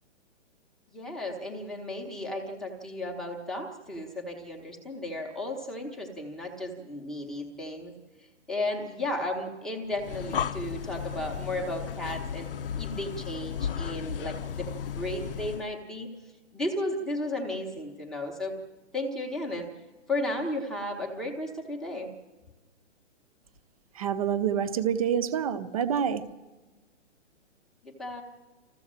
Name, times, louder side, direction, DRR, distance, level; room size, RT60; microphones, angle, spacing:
voice 1, 0.9-7.9 8.2-12.5 12.8-16.1 16.5-18.6 18.9-19.7 20.1-22.1 27.8-28.2, left 1 dB, ahead, -2 dB, 1.0 m, -34 dB
Breathing, 9.9-15.7, left 8 dB, 50° left, 0.7 m, -34 dB
voice 2, 23.9-26.2, right 8 dB, 30° right, 12 dB, 0.9 m, -27 dB
26.5 x 14.5 x 7.4 m, 1.2 s
hypercardioid pair, 170°, 36 cm